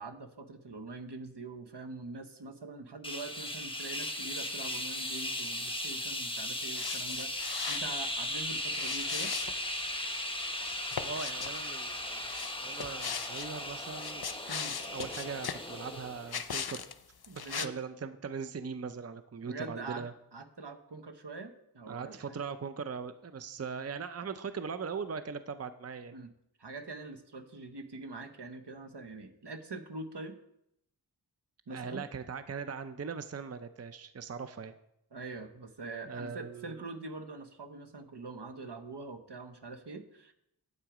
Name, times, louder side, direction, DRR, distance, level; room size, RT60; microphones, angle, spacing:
voice 1, 0.0-9.3 14.5-14.8 17.3-17.7 19.4-20.1 20.3-22.4 26.1-26.3 26.6-30.4 31.7-32.1 35.1-40.3, right 3 dB, 80° right, 7 dB, 1.0 m, -44 dB
sound 1, 3.0-16.4, left 1 dB, 15° left, 1.1 m, -37 dB
sound 2, 6.7-8.0 8.7-9.8 10.6-11.5 12.3-13.5 13.9-15.7 16.3-16.9 17.2-17.7, left 7 dB, 65° left, 0.6 m, -38 dB
voice 2, 11.0-12.3 12.6-14.2 14.9-16.9 17.4-20.1 21.9-26.2 31.7-34.7 36.1-36.8, right 5 dB, 40° right, 10 dB, 0.5 m, -40 dB
9.0 x 8.2 x 4.9 m, 0.78 s
wide cardioid pair, 40°, 41 cm